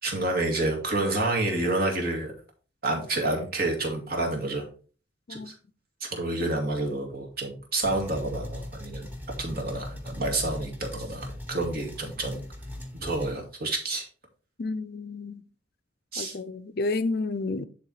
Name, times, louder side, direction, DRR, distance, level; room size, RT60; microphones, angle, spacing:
voice 1, 0.0-2.3 2.8-4.6 5.3-5.5 6.0-9.1 9.4-12.4 12.9-14.1 16.1-16.4, right 2 dB, 50° right, 2.3 m, -29 dB
sound 1, 7.8-13.4, left 1 dB, 10° right, 1.2 m, -39 dB
voice 2, 14.6-15.4 16.2-17.7, left 3 dB, 50° left, 0.5 m, -30 dB
10.5 x 3.6 x 4.7 m
head